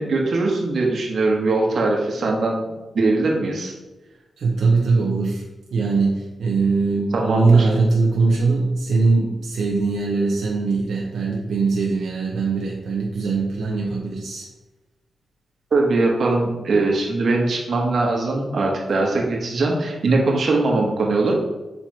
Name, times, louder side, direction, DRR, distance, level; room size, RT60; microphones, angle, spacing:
voice 1, 0.0-2.7 2.9-3.7 7.1-7.7 15.7-21.4, right 3 dB, 60° right, 0 dB, 1.3 m, -21 dB
voice 2, 4.4-5.4 5.7-14.5, right 4 dB, 80° right, -1 dB, 0.8 m, -21 dB
5.6 x 4.5 x 4.6 m, 1.1 s
wide cardioid pair, 130°, 0 cm